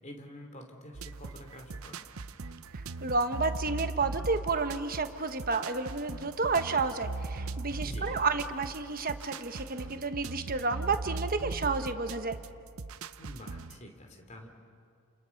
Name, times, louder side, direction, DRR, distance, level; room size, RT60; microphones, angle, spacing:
voice 1, 0.0-2.1 7.8-8.2 13.2-14.5, left 1 dB, 35° left, 4 dB, 2.8 m, -47 dB
sound 1, 0.9-13.8, right 3 dB, 80° right, 0.8 m, -39 dB
voice 2, 3.0-12.4, right 4 dB, 40° right, 8 dB, 1.2 m, -31 dB
30.0 x 29.0 x 5.9 m, 2.4 s
head